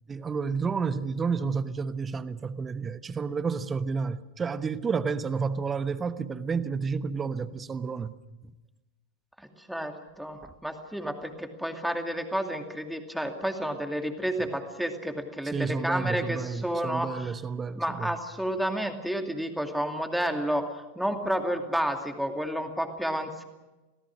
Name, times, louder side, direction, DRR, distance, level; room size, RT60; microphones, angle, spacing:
voice 1, 0.1-8.1 8.4-8.5 10.4-10.5 15.4-18.1, right 5 dB, 20° right, 1.1 m, -30 dB
voice 2, 9.4-17.3 17.8-20.7 21.0-23.4, equal, ahead, 2.5 m, -31 dB
27.5 x 18.0 x 6.3 m
figure-of-eight pair, 90°, 0 cm